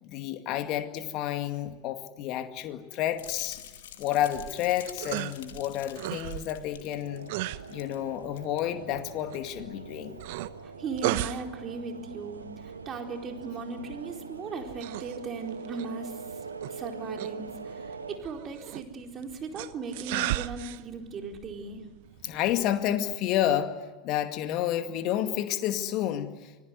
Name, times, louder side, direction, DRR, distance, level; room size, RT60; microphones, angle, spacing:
voice 1, 0.0-3.6 4.0-7.3 7.7-10.2 22.2-23.7 24.0-26.5, left 11 dB, 45° left, 8 dB, 2.2 m, -30 dB
sound 1, 3.1-8.0 8.2-8.6 9.1-9.2, left 10 dB, 65° left, 2.7 m, -47 dB
sound 2, 4.3-23.0, right 17 dB, 55° right, 0.9 m, -38 dB
sound 3, 6.9-18.2, right 4 dB, 80° right, 1.5 m, -43 dB
voice 2, 10.6-16.4 16.7-21.8, right 4 dB, 30° right, 3 dB, 4.3 m, -38 dB
26.0 x 20.5 x 9.5 m, 1.2 s
figure-of-eight pair, 80°, 0 cm